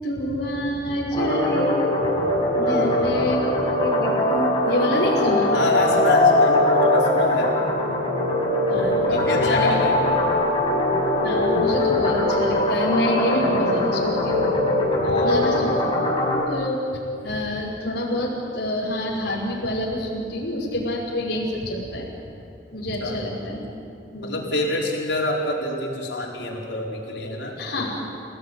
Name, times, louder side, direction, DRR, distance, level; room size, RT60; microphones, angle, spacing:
voice 1, 0.0-1.8 2.6-3.4 3.8-5.5 8.7-9.8 11.2-14.4 14.9-15.7 16.2-16.8 17.2-22.1 22.7-23.7 24.1-24.4 27.6-28.0, left 1 dB, 60° left, -4 dB, 5.7 m, -27 dB
sound 1, 1.1-16.4, left 1 dB, 30° left, 5.7 m, -21 dB
voice 2, 2.6-3.0 5.5-7.5 9.1-10.3 15.0-15.6 23.0-23.2 24.2-27.6, left 2 dB, 80° left, -2 dB, 5.4 m, -25 dB
29.0 x 17.5 x 9.8 m, 2.5 s
head